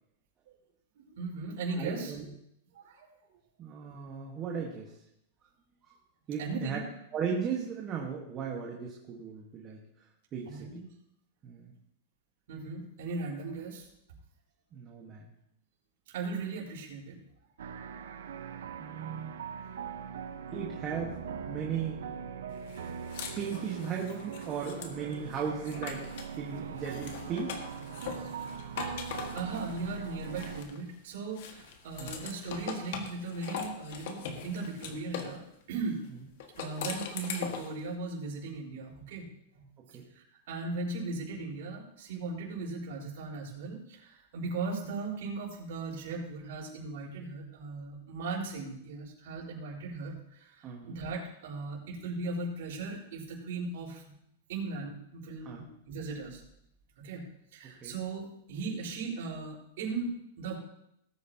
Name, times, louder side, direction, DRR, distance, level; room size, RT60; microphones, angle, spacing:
voice 1, 1.0-2.2 2.7-3.0 6.4-6.8 10.5-10.9 12.5-13.9 16.1-17.2 29.3-36.0 36.6-39.3 39.5-39.7 40.1-54.2 54.5-56.4 57.0-57.2 57.5-60.6, right 3 dB, 60° right, -3 dB, 4.3 m, -38 dB
voice 2, 1.7-2.3 3.6-5.0 5.8-5.9 6.3-6.8 7.1-9.8 10.3-10.8 11.4-11.7 14.7-15.3 18.8-19.4 20.5-21.1 21.5-22.0 23.4-27.6 32.0-32.2 39.9-40.0 50.6-51.0 55.4-55.6 57.8-58.0, right 6 dB, 20° right, -1 dB, 1.3 m, -36 dB
sound 1, 17.6-30.6, right 7 dB, 85° right, 0.9 m, -41 dB
sound 2, 22.7-26.4 26.8-30.9 31.4-35.4 36.4-37.8, left 6 dB, 55° left, 1.6 m, -41 dB
18.5 x 9.2 x 2.8 m, 0.75 s
supercardioid pair, 165°, 0 cm